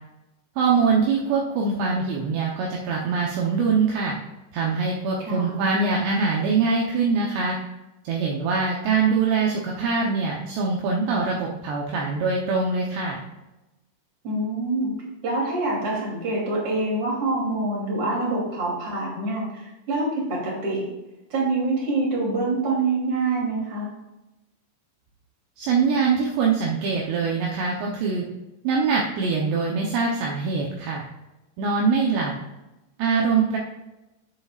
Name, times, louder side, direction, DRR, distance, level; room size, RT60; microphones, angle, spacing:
voice 1, 0.6-4.1 4.5-7.6 8.0-13.2 25.6-28.3 28.6-31.0 31.6-32.3 33.0-33.6, right 4 dB, 75° right, -2 dB, 2.9 m, -23 dB
voice 2, 5.2-5.6 14.2-14.9 15.2-20.8 21.3-23.9, right 2 dB, 35° right, -4 dB, 3.5 m, -25 dB
12.0 x 7.7 x 2.4 m, 1.0 s
omnidirectional pair, 5.3 m